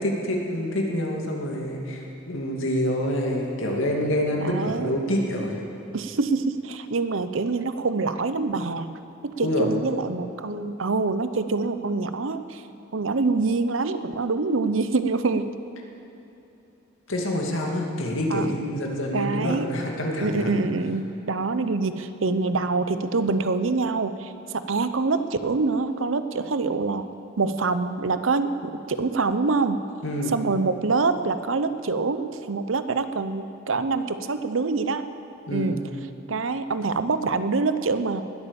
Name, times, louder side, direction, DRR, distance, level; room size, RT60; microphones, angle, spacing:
voice 1, 0.0-5.6 9.4-9.7 17.1-20.5 30.0-30.3 35.5-35.7, equal, 90° left, 0 dB, 2.4 m, -27 dB
voice 2, 4.4-4.9 5.9-8.9 9.2-12.6 12.9-15.5 18.3-18.5 19.1-19.7 20.2-27.1 27.4-29.9 30.3-35.0 35.5-35.8 36.3-38.2, right 3 dB, 85° right, 11 dB, 0.8 m, -25 dB
19.5 x 8.6 x 7.1 m, 3.0 s
head